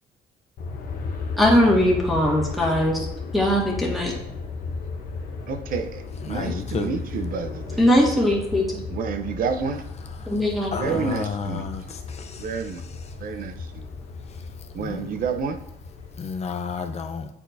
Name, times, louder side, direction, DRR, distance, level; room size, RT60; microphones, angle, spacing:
Aircraft, 0.6-16.8, left 4 dB, 60° left, 1.1 m, -35 dB
voice 1, 1.4-3.1 3.3-4.1 7.8-8.8 10.3-11.0, left 1 dB, ahead, -4 dB, 1.9 m, -20 dB
voice 2, 5.5-7.8 8.9-9.8 10.8-11.7 12.4-12.8 13.2-13.9 14.7-15.6, right 5 dB, 55° right, 7 dB, 0.7 m, -29 dB
voice 3, 6.2-6.9 10.2-10.3 10.7-12.5 14.8-15.1 16.2-17.3, left 5 dB, 40° left, 6 dB, 0.8 m, -31 dB
9.9 x 4.3 x 2.7 m, 0.77 s
cardioid pair, 110°, 17 cm